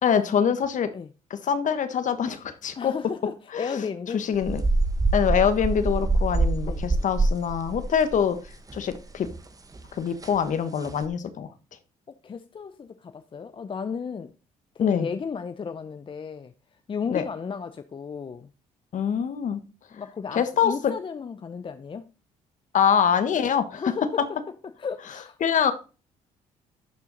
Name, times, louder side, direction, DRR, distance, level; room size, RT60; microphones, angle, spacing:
voice 1, 0.0-0.9 1.3-2.9 3.5-3.8 4.1-4.6 5.1-8.4 8.7-9.3 9.9-11.5 14.8-15.1 17.1-17.2 18.9-19.6 20.3-20.9 22.7-23.9 25.4-25.7, left 7 dB, 55° left, 1.3 m, -24 dB
voice 2, 2.8-4.2 6.6-6.8 12.1-14.3 14.7-16.5 16.9-18.5 19.9-22.1 23.7-24.3 24.8-25.4, left 6 dB, 35° left, 0.6 m, -34 dB
sound 1, 4.4-9.0 9.2-9.4 9.8-9.9 10.2-10.4 10.8-11.1, right 2 dB, 25° right, 1.1 m, -25 dB
11.5 x 4.5 x 3.9 m
supercardioid pair, 65°, 16 cm